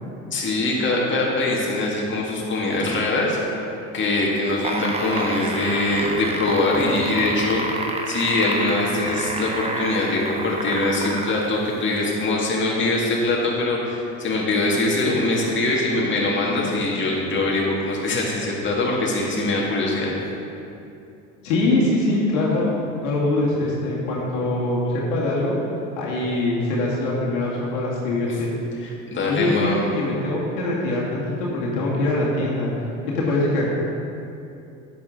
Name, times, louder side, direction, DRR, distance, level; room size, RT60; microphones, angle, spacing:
voice 1, 0.3-3.4 3.9-7.6 8.1-20.1 28.8-29.8, left 2 dB, 30° left, -3 dB, 1.9 m, -23 dB
sound 1, 4.5-11.4 12.3-12.4, right 2 dB, 15° right, 1.0 m, -29 dB
voice 2, 21.4-22.7 23.0-25.6 26.0-28.5 29.3-32.7 33.1-33.6, left 2 dB, 70° left, -4 dB, 2.1 m, -23 dB
10.5 x 7.2 x 3.8 m, 2.6 s
hypercardioid pair, 65°, 40 cm